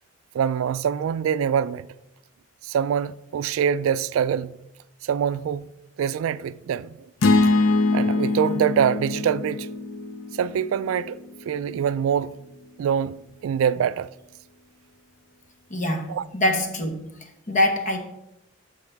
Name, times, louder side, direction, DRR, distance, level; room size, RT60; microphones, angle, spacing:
voice 1, 0.3-1.9 2.6-4.6 5.0-5.7 6.0-7.0 7.9-9.7 10.4-11.2 11.5-12.3 12.8-14.1 16.1-16.3, right 8 dB, 90° right, 0.3 m, -24 dB
sound 1, 7.2-11.5, left 3 dB, 85° left, 0.5 m, -23 dB
voice 2, 15.7-17.0 17.5-18.0, left 1 dB, 40° left, 1.1 m, -24 dB
13.0 x 4.7 x 3.5 m
head